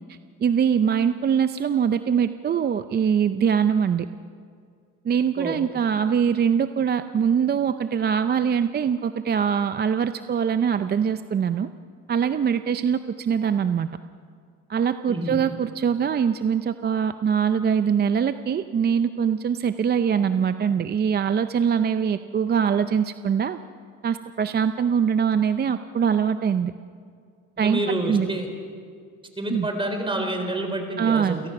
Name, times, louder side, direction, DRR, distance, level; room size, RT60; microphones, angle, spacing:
voice 1, 0.1-4.1 5.0-11.7 12.1-13.9 14.7-23.6 24.0-26.7 27.6-28.3 29.5-29.7 31.0-31.4, right 7 dB, 30° right, 10 dB, 0.6 m, -23 dB
voice 2, 27.6-28.5 29.4-31.5, right 1 dB, 15° right, 5 dB, 4.1 m, -28 dB
29.0 x 17.5 x 6.0 m, 2.2 s
cardioid pair, 105°, 32 cm